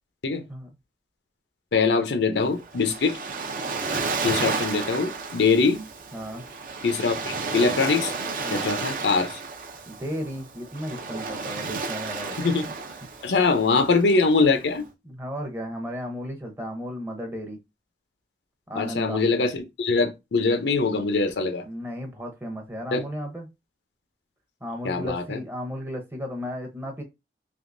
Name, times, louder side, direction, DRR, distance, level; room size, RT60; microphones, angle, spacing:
voice 1, 1.7-3.2 4.2-5.8 6.8-8.1 8.5-9.4 12.4-12.7 13.2-14.8 18.8-21.7 22.9-23.0 24.8-25.4, left 4 dB, 85° left, 0.6 m, -23 dB
Waves surf, 2.4-14.8, right 4 dB, 50° right, 0.5 m, -32 dB
voice 2, 6.1-6.5 8.4-8.8 9.9-12.5 15.0-17.6 18.7-19.2 21.6-23.5 24.6-27.0, equal, 15° right, 0.7 m, -34 dB
3.5 x 2.8 x 2.5 m
head